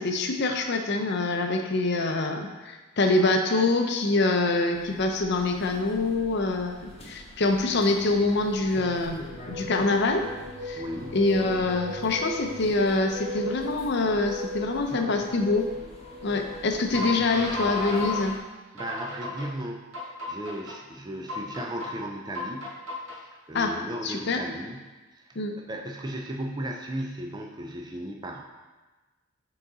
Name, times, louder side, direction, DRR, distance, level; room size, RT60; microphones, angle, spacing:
voice 1, 0.0-10.2 10.6-10.8 11.1-15.7 16.2-18.4 23.5-23.7 24.0-24.4 25.4-25.6, left 2 dB, 50° left, 4 dB, 0.6 m, -25 dB
sound 1, 4.7-18.4, left 1 dB, 30° left, 0.9 m, -45 dB
sound 2, 9.3-18.3 18.8-19.5 19.9-20.7 21.3-21.9 22.4-23.2, left 2 dB, 75° right, 1.7 m, -36 dB
voice 2, 10.7-11.2 18.7-22.7 23.2-24.9 25.1-28.4, right 1 dB, 20° right, 2 dB, 0.4 m, -36 dB
6.2 x 3.9 x 3.9 m, 1.2 s
head